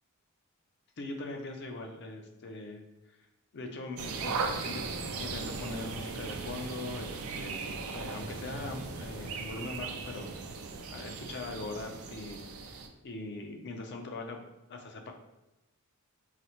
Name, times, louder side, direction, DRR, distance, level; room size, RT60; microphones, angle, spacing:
voice 1, 1.0-2.8 3.5-4.9 5.2-10.3 10.9-12.4 12.7-12.8 13.0-14.4 14.7-15.1, left 2 dB, 50° left, 4 dB, 0.5 m, -41 dB
sound 1, 4.0-12.9, right 4 dB, 70° right, 0.4 m, -38 dB
4.0 x 2.0 x 2.9 m, 0.97 s
head